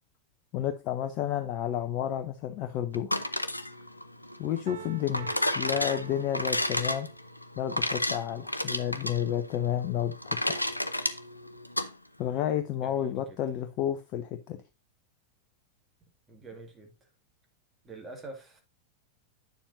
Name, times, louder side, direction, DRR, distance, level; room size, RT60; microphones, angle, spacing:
voice 1, 0.5-3.1 4.4-5.3 5.5-7.1 7.6-10.7 12.2-14.6, left 10 dB, 40° left, 0.7 m, -31 dB
sound 1, 2.9-11.9, left 1 dB, 85° left, 0.5 m, -32 dB
Piano, 4.7-7.2, right 10 dB, 65° right, 0.5 m, -45 dB
voice 2, 4.8-5.7 12.8-13.4 16.3-17.1 17.8-18.6, right 3 dB, 20° right, 2.2 m, -47 dB
9.3 x 7.1 x 2.6 m
figure-of-eight pair, 90°, 0 cm